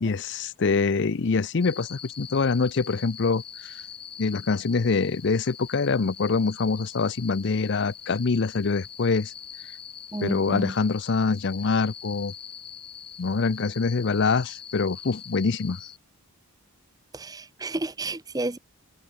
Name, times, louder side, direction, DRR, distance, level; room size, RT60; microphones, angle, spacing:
voice 1, 0.0-3.8 4.2-9.3 10.2-12.3 13.2-15.8, left 4 dB, 50° left, 0.5 m, -25 dB
sound 1, 1.6-16.0, left 8 dB, 25° left, 0.9 m, -43 dB
voice 2, 10.1-10.8 17.1-18.6, right 2 dB, 15° right, 0.7 m, -31 dB
open air
head